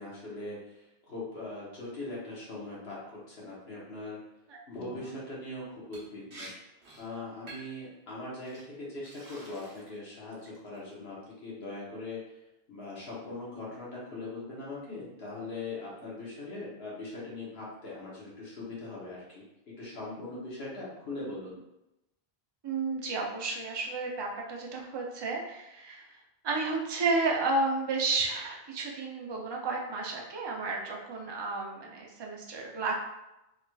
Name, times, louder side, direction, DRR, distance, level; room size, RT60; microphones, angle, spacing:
voice 1, 0.0-3.0 3.3-4.2 4.7-6.5 7.0-11.2 11.4-12.2 12.7-21.6, left 2 dB, 75° left, -6 dB, 1.3 m, -41 dB
Liquid, 5.9-6.1 6.3-6.5 6.8-7.1 7.5-7.8 8.5-8.6 9.0-10.0 10.3-10.8, right 2 dB, 85° right, 1.2 m, -48 dB
voice 2, 22.6-26.1 26.4-32.9, right 3 dB, 40° right, 0 dB, 0.4 m, -32 dB
3.8 x 3.0 x 2.2 m, 0.92 s
omnidirectional pair, 1.1 m